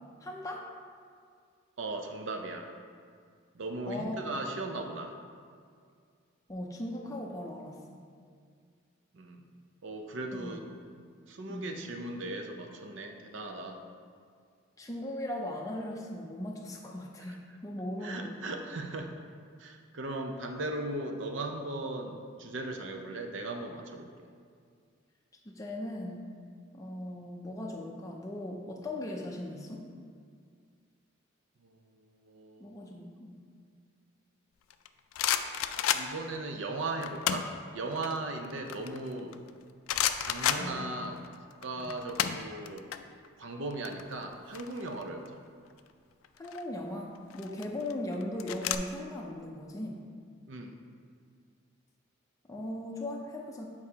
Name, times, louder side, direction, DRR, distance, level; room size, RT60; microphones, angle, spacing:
voice 1, 0.2-0.7 3.9-4.2 6.5-8.0 10.3-10.6 11.5-11.8 14.8-18.4 25.5-26.2 26.7-29.9 32.6-33.4 40.6-40.8 41.8-41.9 46.4-50.0 52.5-53.6, left 1 dB, 15° left, -1 dB, 0.5 m, -38 dB
voice 2, 1.8-2.7 3.5-5.2 9.1-9.4 9.8-10.6 11.3-13.9 17.3-17.4 18.0-19.1 19.6-24.3 31.6-32.7 35.9-39.4 40.2-41.2 41.6-42.9 43.4-45.4 50.5-50.8, right 2 dB, 65° right, 4 dB, 0.6 m, -38 dB
sound 1, 34.7-36.4 37.0-37.6 38.0-39.5 39.9-41.3 41.5-43.0 43.2-43.4 43.7-45.3 46.2-46.6 47.3-48.8, left 10 dB, 90° left, 0.3 m, -31 dB
8.7 x 4.7 x 2.8 m, 2.1 s
head